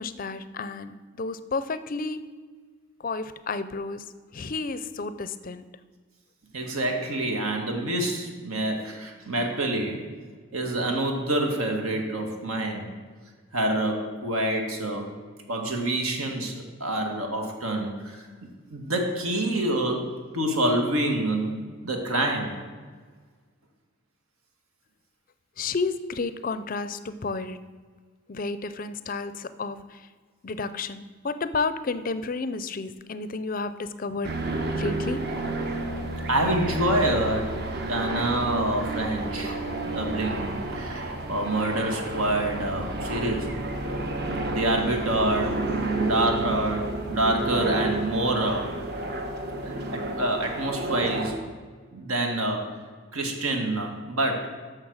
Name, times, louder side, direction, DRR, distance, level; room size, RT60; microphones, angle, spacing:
voice 1, 0.0-2.2 3.0-4.0 4.3-5.6 25.6-27.6 28.3-30.0 30.4-34.3 34.7-35.2, left 4 dB, 40° left, 13 dB, 0.5 m, -31 dB
voice 2, 6.5-10.1 10.5-12.9 13.5-15.1 15.5-18.3 18.7-22.6 36.3-39.6 39.9-43.6 44.5-48.7 49.6-51.4 51.9-52.8 53.1-54.5, right 1 dB, 80° right, 3 dB, 1.8 m, -27 dB
sound 1, 34.2-51.4, right 2 dB, 50° right, 1.1 m, -31 dB
11.5 x 6.7 x 6.4 m, 1.5 s
head